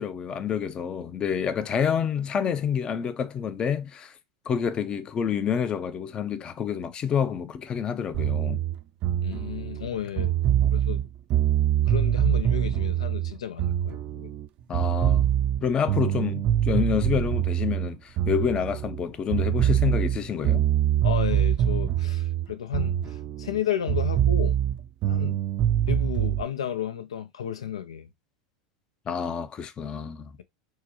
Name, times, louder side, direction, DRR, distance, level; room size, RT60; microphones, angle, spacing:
voice 1, 0.0-4.1 4.5-8.6 10.6-10.7 14.7-15.3 15.6-20.7 29.1-30.3, left 7 dB, 30° left, 0.5 m, -28 dB
sound 1, 8.1-14.5 14.7-19.0 19.3-23.6 23.9-26.4, right 11 dB, 45° right, 0.4 m, -24 dB
voice 2, 9.2-10.3 10.7-11.0 11.8-14.3 21.0-24.6 25.1-25.4 25.9-28.1, left 9 dB, 90° left, 0.5 m, -32 dB
4.6 x 2.0 x 3.0 m
hypercardioid pair, 100°, 3 cm